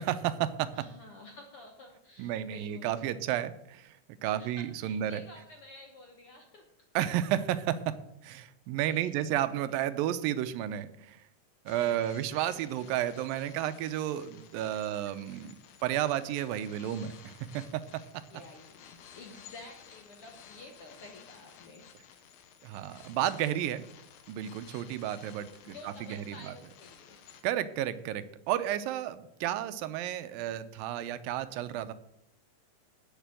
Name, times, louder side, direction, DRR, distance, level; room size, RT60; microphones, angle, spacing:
voice 1, 0.0-0.7 2.2-5.2 7.0-7.9 8.2-11.3 11.7-15.5 15.8-17.8 22.6-23.8 24.3-26.6 27.4-31.9, right 11 dB, 85° right, 12 dB, 2.4 m, -32 dB
voice 2, 0.7-3.1 4.2-6.6 8.9-9.1 9.5-9.8 11.8-12.2 14.7-14.9 18.3-22.1 25.6-27.3, left 2 dB, 60° left, 2 dB, 1.6 m, -51 dB
sound 1, 11.7-27.4, left 8 dB, 85° left, 2.8 m, -55 dB
10.5 x 7.3 x 7.5 m, 0.78 s
omnidirectional pair, 4.0 m